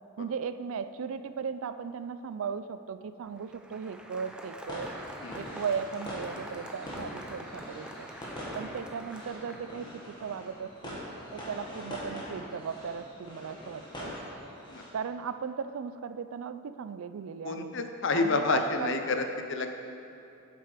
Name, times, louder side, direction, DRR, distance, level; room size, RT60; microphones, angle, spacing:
voice 1, 0.2-4.9 5.3-8.1 8.5-11.0 11.3-14.1 14.9-17.7 18.1-19.0, right 6 dB, 70° right, 12 dB, 0.4 m, -37 dB
Applause, 3.2-10.2, right 1 dB, 5° right, 0.4 m, -46 dB
sound 1, 4.6-14.9, equal, 20° left, 1.6 m, -43 dB
voice 2, 17.4-19.7, left 3 dB, 55° left, 6 dB, 0.6 m, -29 dB
8.1 x 7.6 x 4.9 m, 2.7 s
head